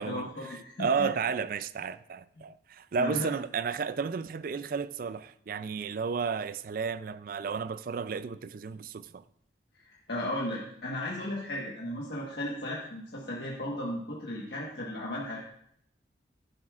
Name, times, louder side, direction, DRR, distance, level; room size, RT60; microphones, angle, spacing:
voice 1, 0.0-1.1 3.0-3.3 9.7-15.4, left 1 dB, 65° left, 1.4 m, -35 dB
voice 2, 0.8-9.2, right 5 dB, 50° right, 0.4 m, -32 dB
11.5 x 10.5 x 2.4 m
head